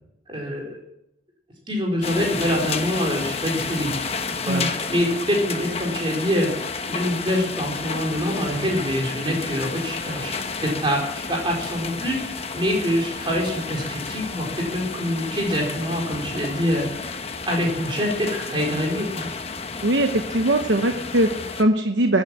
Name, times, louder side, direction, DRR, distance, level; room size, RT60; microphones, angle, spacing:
voice 1, 0.3-0.7 1.7-4.0 4.3-6.5 6.9-16.9 17.5-19.3, equal, 30° right, -1 dB, 4.5 m, -25 dB
sound 1, 2.0-21.6, left 4 dB, 35° left, 1.0 m, -31 dB
voice 2, 19.8-22.2, right 1 dB, 80° right, 5 dB, 1.0 m, -21 dB
14.0 x 9.5 x 8.9 m, 0.86 s
head